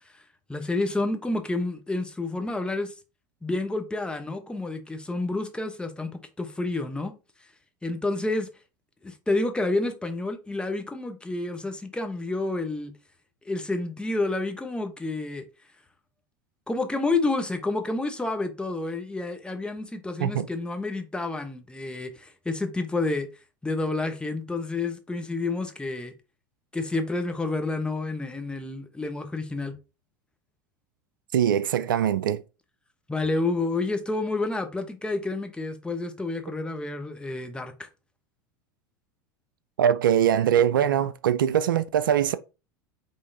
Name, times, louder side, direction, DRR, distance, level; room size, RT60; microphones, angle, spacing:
voice 1, 0.5-2.9 3.4-7.1 7.8-8.5 9.0-12.9 13.4-15.4 16.7-23.3 23.6-26.1 26.7-29.7 33.1-37.9, left 2 dB, 10° left, 1.0 m, -29 dB
voice 2, 31.3-32.4 39.8-42.4, right 9 dB, 80° right, 0.4 m, -22 dB
5.5 x 3.4 x 2.7 m
hypercardioid pair, 85°, 11 cm